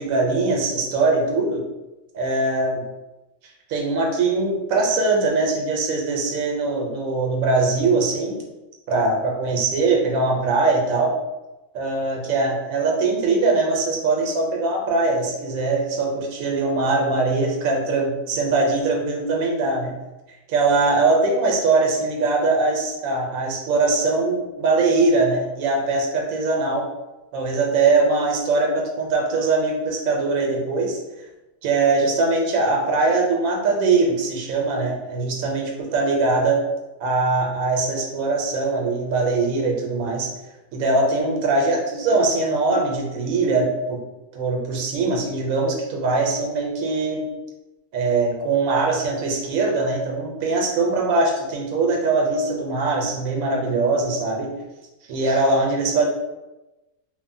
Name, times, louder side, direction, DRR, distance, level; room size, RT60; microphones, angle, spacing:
voice 1, 0.0-1.6 2.1-2.8 3.7-8.4 8.9-11.2 11.7-19.9 20.5-26.8 27.3-31.0 31.6-36.6 37.0-40.3 40.7-44.0 44.3-47.3 47.9-54.5 55.1-56.1, right 3 dB, 85° right, 0 dB, 1.0 m, -21 dB
2.9 x 2.1 x 2.6 m, 1.0 s
omnidirectional pair, 1.4 m